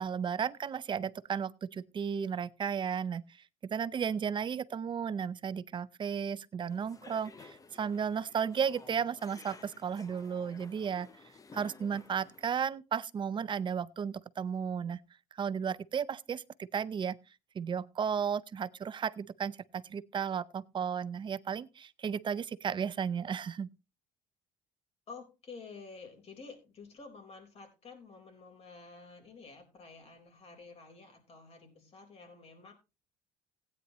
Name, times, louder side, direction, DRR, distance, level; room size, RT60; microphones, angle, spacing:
voice 1, 0.0-3.2 3.6-11.1 11.5-15.0 15.3-17.2 17.5-23.7, right 7 dB, 35° right, 0.6 m, -34 dB
sound 1, 6.7-12.5, left 4 dB, 25° left, 0.8 m, -54 dB
voice 2, 25.1-32.7, left 4 dB, 45° left, 4.1 m, -50 dB
16.0 x 9.5 x 3.0 m
cardioid pair, 115°, 15 cm